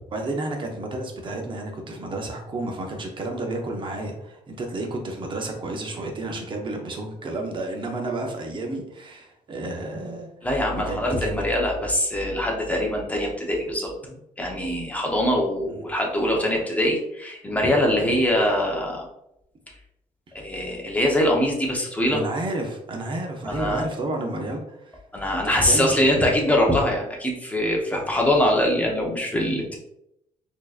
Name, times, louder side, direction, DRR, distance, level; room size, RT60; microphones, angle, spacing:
voice 1, 0.1-10.3 10.7-11.4 14.0-14.2 15.7-15.8 18.0-18.2 22.1-25.0 25.4-26.3, right 2 dB, 35° right, 2 dB, 0.8 m, -31 dB
voice 2, 10.4-13.9 14.4-19.1 20.3-22.2 23.5-23.8 25.1-29.8, left 1 dB, 10° left, -1 dB, 0.8 m, -23 dB
4.4 x 2.9 x 2.5 m, 0.80 s
cardioid pair, 125°, 14 cm